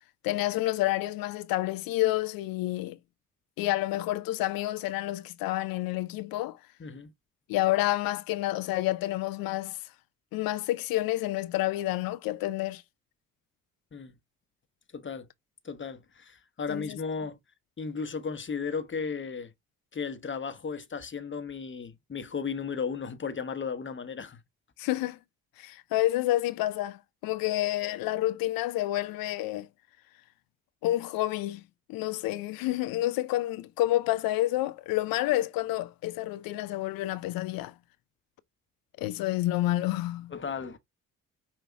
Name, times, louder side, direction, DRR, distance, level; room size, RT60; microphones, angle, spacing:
voice 1, 0.2-3.0 3.6-6.6 7.5-9.9 10.3-12.8 16.7-17.0 24.8-25.2 25.6-29.7 30.8-31.6 31.9-37.7 39.0-40.3, left 16 dB, 60° left, 0.5 m, -29 dB
voice 2, 6.8-7.1 13.9-14.2 14.9-15.3 15.6-17.4 17.8-19.5 19.9-24.4 40.3-40.8, left 5 dB, 30° left, 1.0 m, -35 dB
5.6 x 2.8 x 3.4 m
hypercardioid pair, 40°, 39 cm